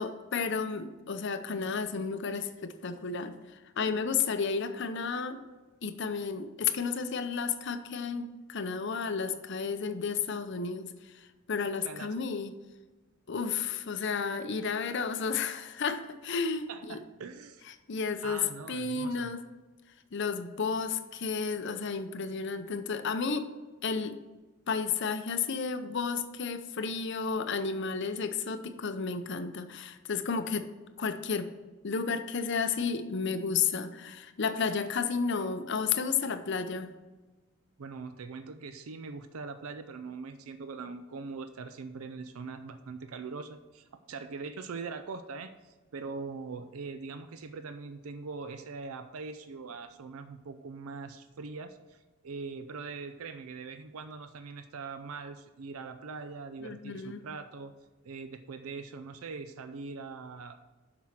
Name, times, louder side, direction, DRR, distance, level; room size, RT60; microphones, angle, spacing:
voice 1, 0.0-5.4 5.8-12.5 13.3-17.0 17.9-19.4 20.1-23.5 23.8-24.2 24.7-30.7 31.0-31.5 31.8-36.9 56.6-57.2, left 5 dB, 55° left, 9 dB, 0.6 m, -32 dB
voice 2, 11.8-12.2 16.7-17.6 18.2-19.3 37.8-57.7 58.0-60.6, right 4 dB, 85° right, 10 dB, 0.5 m, -42 dB
7.4 x 6.1 x 5.8 m, 1.2 s
head